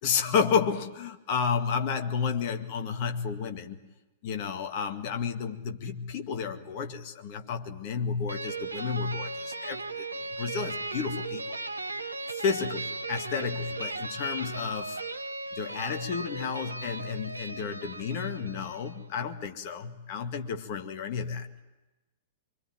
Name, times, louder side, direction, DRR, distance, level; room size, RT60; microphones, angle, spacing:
voice 1, 0.0-3.8 4.2-10.1 10.3-11.6 12.3-15.0 15.5-21.5, left 6 dB, 40° left, 2.0 m, -31 dB
sound 1, 8.3-19.0, right 3 dB, 80° right, 1.2 m, -37 dB
26.5 x 24.0 x 9.2 m
figure-of-eight pair, 105°, 0 cm